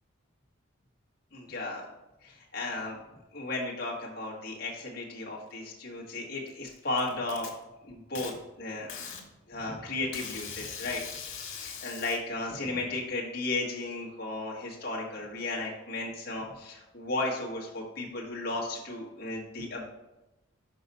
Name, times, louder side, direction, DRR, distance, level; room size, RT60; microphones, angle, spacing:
voice 1, 1.3-1.9 2.2-3.0 3.3-7.5 7.9-8.9 9.5-11.0 11.3-19.9, left 2 dB, 50° left, -3 dB, 1.5 m, -35 dB
Packing tape duct tape, 6.5-7.5 8.1-8.3 8.9-9.2 10.1-12.2, left 6 dB, 85° left, 1.5 m, -41 dB
6.0 x 5.3 x 4.1 m, 0.98 s
head